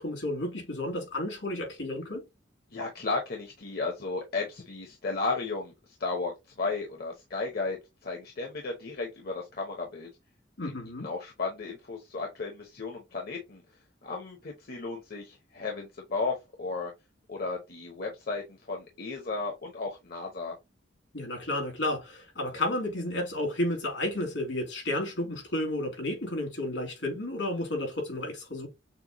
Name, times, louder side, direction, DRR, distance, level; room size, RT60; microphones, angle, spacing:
voice 1, 0.0-2.2 10.6-11.1 21.1-28.7, left 1 dB, 80° left, 2.9 m, -32 dB
voice 2, 2.7-10.1 11.0-13.6 14.0-16.9 17.3-20.5, left 3 dB, 55° left, 0.9 m, -34 dB
6.7 x 2.2 x 3.0 m
head